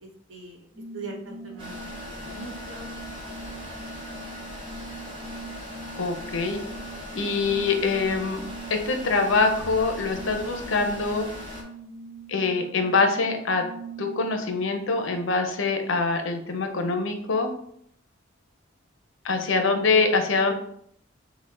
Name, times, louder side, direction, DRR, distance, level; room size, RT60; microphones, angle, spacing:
voice 1, 0.0-0.7 0.9-2.9 3.2-3.5, right 3 dB, 75° right, 0 dB, 1.0 m, -42 dB
sound 1, 0.7-15.2, right 3 dB, 45° right, 1.1 m, -42 dB
sound 2, 1.6-11.6, left 1 dB, 25° right, 0.8 m, -39 dB
voice 2, 5.9-6.6 7.1-8.4 8.7-11.3 12.3-13.6 14.0-17.5 19.2-20.5, left 4 dB, 75° left, 6 dB, 0.7 m, -24 dB
6.0 x 2.1 x 3.7 m, 0.68 s
head